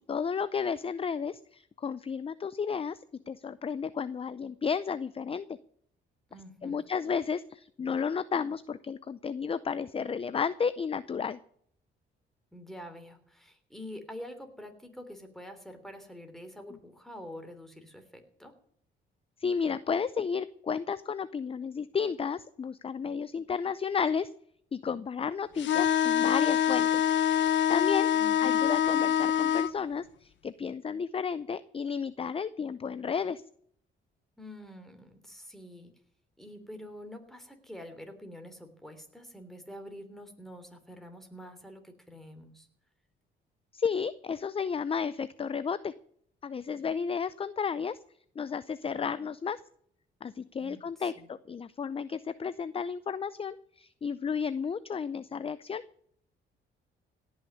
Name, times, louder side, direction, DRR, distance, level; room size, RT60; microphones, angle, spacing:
voice 1, 0.0-3.0 3.3-5.6 6.6-11.4 19.4-24.3 24.7-27.0 27.7-28.1 28.4-33.4 43.7-45.9 46.4-48.0 48.4-49.6 50.2-55.8, left 6 dB, 30° left, 16 dB, 0.6 m, -32 dB
voice 2, 6.3-6.8 12.5-18.5 28.1-28.6 34.4-35.9 36.4-42.7 50.6-51.3, left 1 dB, ahead, 6 dB, 3.2 m, -46 dB
sound 1, 25.6-29.7, left 9 dB, 65° left, 0.9 m, -25 dB
17.0 x 6.4 x 9.5 m, 0.66 s
cardioid pair, 90°, 20 cm